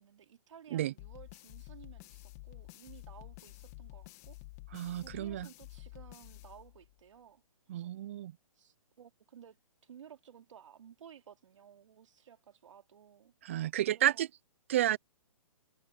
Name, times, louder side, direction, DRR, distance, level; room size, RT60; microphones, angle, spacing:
voice 1, 0.0-4.4 5.0-7.4 7.7-7.9 8.5-9.6 9.8-13.3 13.9-14.3, right 8 dB, 60° right, 2.9 m, -56 dB
sound 1, 1.0-7.1, left 21 dB, 30° left, 2.2 m, -50 dB
voice 2, 4.7-5.5 7.7-8.3 13.4-14.3 14.7-15.0, right 12 dB, 25° right, 0.3 m, -31 dB
hypercardioid pair, 155°, 18 cm